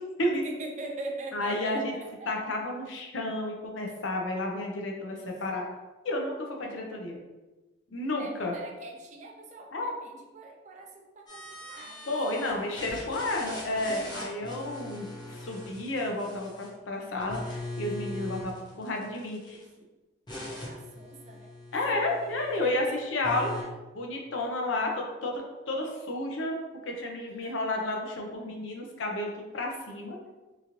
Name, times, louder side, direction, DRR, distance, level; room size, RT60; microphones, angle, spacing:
voice 1, 0.3-2.3 6.1-6.3 8.1-13.9 19.3-19.9 20.3-23.5 27.3-27.6, right 2 dB, 35° right, 2 dB, 0.3 m, -43 dB
voice 2, 1.3-1.9 2.3-5.7 6.0-6.3 6.6-7.2 7.9-8.5 9.7-9.9 12.1-19.6 21.7-22.8 23.1-23.5 23.9-25.4 25.7-26.6 26.8-30.2, left 2 dB, 70° left, 1 dB, 0.6 m, -31 dB
sound 1, 11.3-12.5 12.8-16.8 17.2-19.6 20.3-22.7 23.2-23.6, left 1 dB, 20° left, 0.7 m, -41 dB
3.0 x 2.5 x 2.8 m, 1.1 s
head